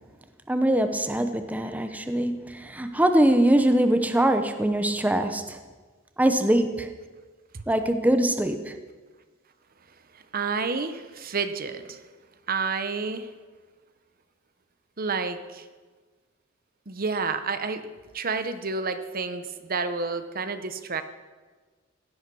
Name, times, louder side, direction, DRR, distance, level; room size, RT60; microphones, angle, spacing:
voice 1, 0.5-5.6 6.2-6.9 7.7-8.7, right 1 dB, 5° right, 7 dB, 0.7 m, -23 dB
voice 2, 10.3-12.0 12.5-13.3 15.0-15.6 16.9-17.8 18.1-21.0, right 4 dB, 45° right, 10 dB, 0.9 m, -29 dB
16.5 x 11.0 x 6.2 m, 1.4 s
head